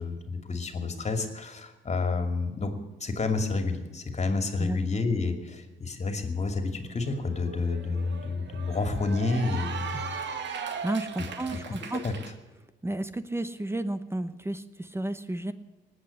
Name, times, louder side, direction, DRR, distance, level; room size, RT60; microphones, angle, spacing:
voice 1, 0.0-10.2 11.7-11.8 12.0-12.1, left 3 dB, 35° left, 6 dB, 2.7 m, -29 dB
Cheering / Applause, 6.9-12.3, right 6 dB, 65° right, 2.0 m, -38 dB
voice 2, 10.8-12.0 12.8-15.5, right 1 dB, 10° right, 12 dB, 1.0 m, -32 dB
19.0 x 8.1 x 8.5 m, 1.2 s
cardioid pair, 90°, 20 cm